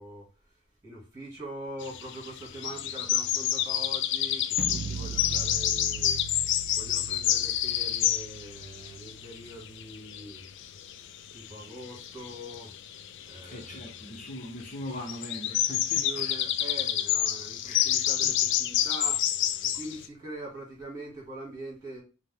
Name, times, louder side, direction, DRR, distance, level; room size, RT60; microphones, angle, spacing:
voice 1, 0.0-6.2 6.7-10.4 11.3-12.7 13.2-14.1 15.7-22.0, right 1 dB, 20° right, 2.0 m, -43 dB
sound 1, 1.8-20.1, left 11 dB, 60° left, 0.3 m, -29 dB
sound 2, 4.6-10.6, right 6 dB, 45° right, 0.3 m, -40 dB
voice 2, 13.4-16.4 17.6-18.3, left 1 dB, 40° left, 0.8 m, -41 dB
4.9 x 2.1 x 3.5 m
head